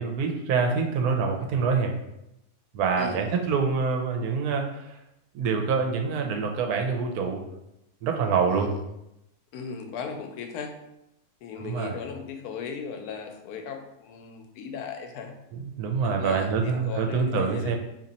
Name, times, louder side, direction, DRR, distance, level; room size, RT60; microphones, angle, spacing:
voice 1, 0.0-1.9 2.7-5.0 5.3-7.4 8.0-8.7 11.6-12.0 15.5-17.8, right 5 dB, 90° right, 3 dB, 1.1 m, -26 dB
voice 2, 3.0-3.3 8.5-8.7 9.5-10.8 11.4-15.3 16.0-17.7, left 6 dB, 90° left, 5 dB, 1.1 m, -37 dB
2.9 x 2.8 x 3.9 m, 0.84 s
omnidirectional pair, 1.6 m